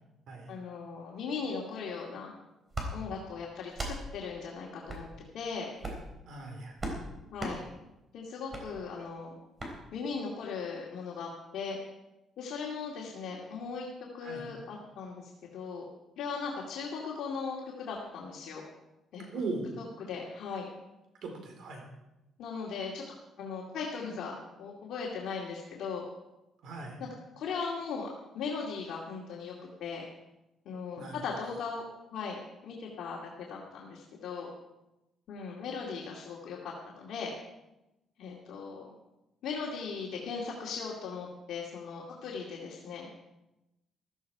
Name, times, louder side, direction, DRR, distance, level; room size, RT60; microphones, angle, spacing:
voice 1, 0.5-2.3 2.9-5.1 5.3-5.7 7.3-7.6 8.1-9.4 9.9-11.8 12.4-13.9 14.1-15.8 16.2-18.6 19.1-19.2 19.8-20.7 22.4-23.0 23.4-26.0 27.0-27.1 27.4-28.1 28.3-29.5 29.8-30.0 30.7-31.9 32.1-34.5 35.3-37.3 38.2-38.9 39.4-43.3, left 5 dB, 70° left, -3 dB, 2.4 m, -38 dB
sound 1, 2.7-2.9 3.7-4.0 4.9-5.0 5.8-6.1 6.8-7.0 7.4-7.6 8.5-8.6 9.6-9.7, right 1 dB, 25° right, 3.6 m, -36 dB
voice 2, 6.3-6.7 14.2-14.5 19.3-19.7 21.2-21.8 26.6-27.0 31.0-31.2, right 3 dB, 70° right, 3 dB, 4.1 m, -38 dB
14.5 x 13.5 x 4.8 m, 0.96 s
cardioid pair, 125°, 0 cm